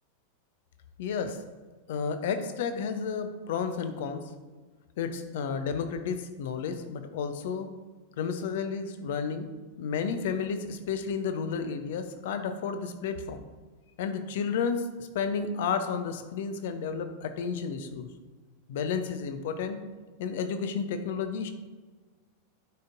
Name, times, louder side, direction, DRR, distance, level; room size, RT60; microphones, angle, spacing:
voice 1, 1.0-1.5 1.9-4.4 5.0-7.7 8.2-9.5 9.8-13.4 14.0-18.1 18.7-19.8 20.2-21.5, left 6 dB, 55° left, 8 dB, 0.7 m, -32 dB
10.5 x 5.3 x 2.6 m, 1.4 s
figure-of-eight pair, 90°, 0 cm